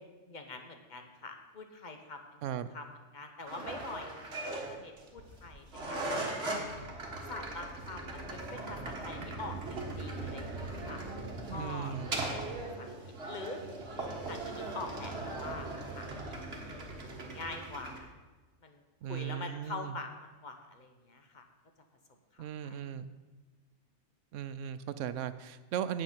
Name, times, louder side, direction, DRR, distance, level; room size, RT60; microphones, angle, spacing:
voice 1, 0.0-2.4 2.7-6.6 7.3-11.0 11.5-12.9 13.3-13.6 14.3-15.7 15.9-16.0 16.5-16.7 17.2-18.1 18.6-21.4 22.3-22.8, left 3 dB, 40° left, 5 dB, 1.1 m, -45 dB
sound 1, 3.5-18.0, right 2 dB, 60° right, 1.7 m, -39 dB
voice 2, 11.5-12.1 19.0-20.0 22.4-23.1 24.3-26.0, right 9 dB, 85° right, 13 dB, 1.0 m, -37 dB
9.3 x 8.2 x 5.8 m, 1.2 s
omnidirectional pair, 1.2 m